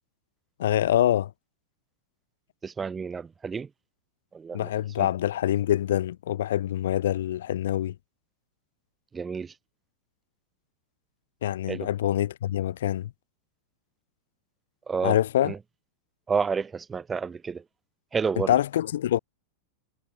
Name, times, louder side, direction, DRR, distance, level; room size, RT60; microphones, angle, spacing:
voice 1, 0.6-1.3 4.5-7.9 11.4-13.1 15.0-15.5 18.5-19.2, left 12 dB, 60° left, 2.7 m, -25 dB
voice 2, 2.6-3.7 4.3-4.7 5.0-5.1 9.1-9.5 11.7-11.9 14.9-15.2 15.4-15.6 16.3-17.6 18.1-18.6, right 5 dB, 15° right, 1.2 m, -30 dB
figure-of-eight pair, 90°, 0 cm